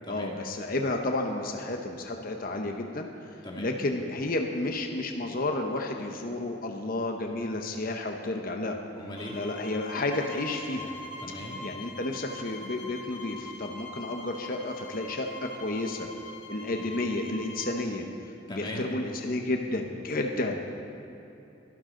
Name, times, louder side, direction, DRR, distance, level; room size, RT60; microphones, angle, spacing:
voice 1, 0.1-3.1 3.6-8.8 9.3-10.9 11.6-16.1 16.5-18.1 18.5-20.7, left 2 dB, 45° left, 3 dB, 0.9 m, -31 dB
voice 2, 3.4-3.8 9.0-9.4 11.2-11.6 18.5-18.9, left 1 dB, 25° left, -2 dB, 2.1 m, -39 dB
sound 1, 9.1-17.8, left 1 dB, 85° left, 2.2 m, -43 dB
23.5 x 12.0 x 3.8 m, 2.9 s
head